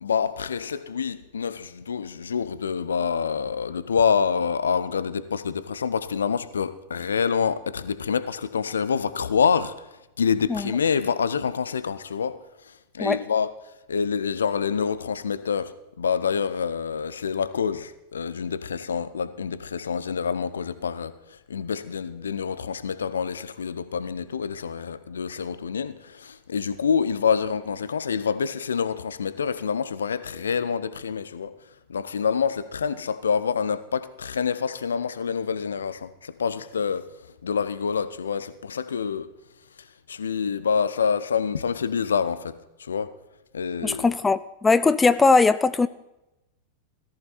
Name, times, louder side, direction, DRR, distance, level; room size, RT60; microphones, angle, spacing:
voice 1, 0.0-9.7 10.2-12.4 12.9-13.5 13.9-31.5 31.9-37.0 37.4-39.3 40.1-43.1 43.5-44.1, left 6 dB, 70° left, 0.8 m, -27 dB
voice 2, 43.8-45.9, left 4 dB, 15° left, 0.5 m, -20 dB
17.5 x 14.0 x 4.2 m
figure-of-eight pair, 90°, 0 cm